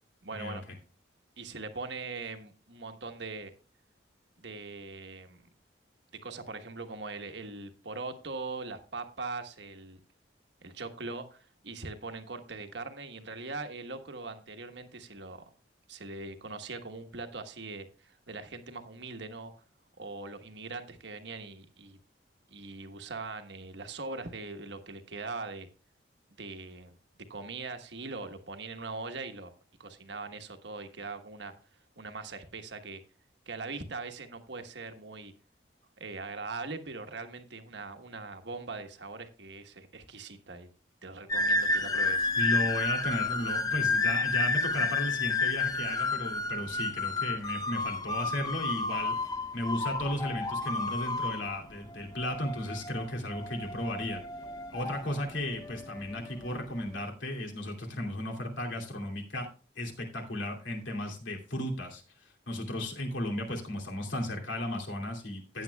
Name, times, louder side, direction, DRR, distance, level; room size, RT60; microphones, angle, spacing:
voice 1, 0.2-0.6 1.4-3.5 4.4-5.4 6.2-10.0 10.6-15.4 15.9-19.5 20.0-22.0 22.5-25.7 26.4-27.0 27.3-29.5 29.8-31.5 32.0-33.0 33.5-35.3 36.0-40.7 41.0-42.3, right 3 dB, 70° right, 7 dB, 1.3 m, -41 dB
sound 1, 41.3-56.9, left 3 dB, 20° left, 0.7 m, -31 dB
voice 2, 42.4-49.1 49.5-54.2 54.7-59.5 59.8-65.6, left 1 dB, 85° left, 2 dB, 2.7 m, -35 dB
14.5 x 9.2 x 2.3 m, 0.37 s
head